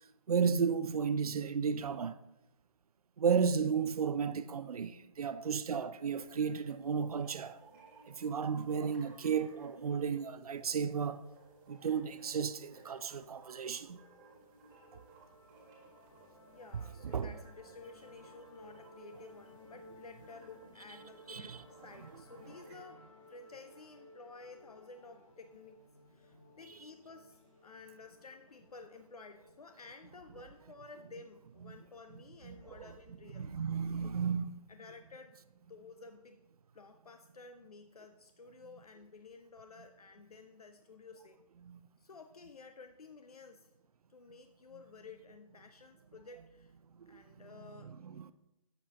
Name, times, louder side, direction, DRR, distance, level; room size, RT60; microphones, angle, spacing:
voice 1, 0.3-2.2 3.2-11.2 11.7-14.0 17.1-17.3 21.3-21.6 32.5-32.9 33.3-34.6 41.6-41.8 47.1-47.2 48.0-48.3, right 6 dB, 85° right, 0.4 m, -33 dB
sound 1, 6.1-22.7, right 2 dB, 20° right, 1.8 m, -61 dB
sound 2, 14.7-33.4, left 1 dB, 60° left, 1.4 m, -59 dB
voice 2, 16.5-33.5 34.0-34.4 34.7-35.4 35.7-36.4 36.7-41.4 42.0-43.7 44.1-46.7 47.1-48.0, left 4 dB, 85° left, 0.6 m, -53 dB
10.0 x 7.3 x 2.8 m
figure-of-eight pair, 150°, 19 cm